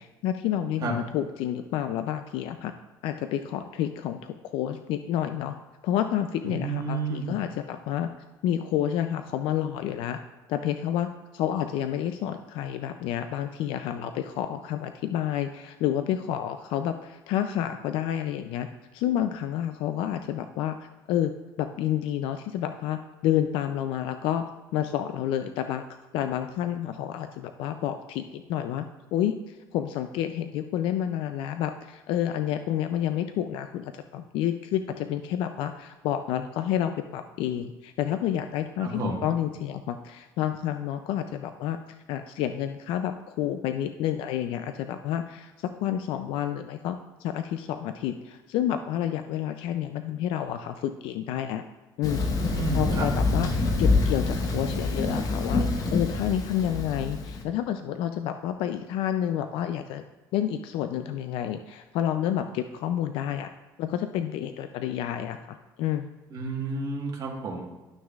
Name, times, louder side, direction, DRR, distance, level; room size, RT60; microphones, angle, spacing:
voice 1, 0.0-2.7 3.0-5.5 5.8-8.1 8.4-10.2 10.5-18.7 18.9-21.3 21.6-25.8 26.1-29.4 29.7-41.8 42.1-51.6 52.0-52.2 52.7-60.0 60.3-63.5 63.8-66.1, left 10 dB, 80° left, 8 dB, 0.4 m, -29 dB
voice 2, 6.4-7.4 38.8-39.2 52.5-53.1 53.4-53.6 66.3-67.7, right 3 dB, 45° right, -2 dB, 1.5 m, -31 dB
Thunder, 52.0-57.4, left 3 dB, 40° left, 1.1 m, -26 dB
11.5 x 6.2 x 2.4 m, 1.2 s
cardioid pair, 120°, 9 cm